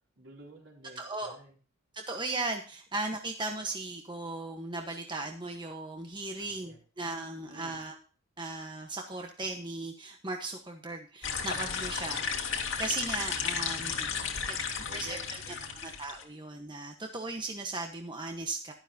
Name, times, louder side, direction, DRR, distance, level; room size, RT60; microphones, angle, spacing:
voice 1, 0.2-1.5 6.6-6.8 7.5-7.7 13.8-15.7, right 2 dB, 60° right, -1 dB, 4.3 m, -52 dB
voice 2, 0.9-1.4 1.9-8.0 8.4-14.1 14.7-18.7, right 2 dB, 20° right, 3 dB, 1.1 m, -37 dB
sound 1, 11.2-16.2, left 6 dB, 65° left, 2.3 m, -34 dB
12.0 x 12.0 x 2.8 m, 0.39 s
head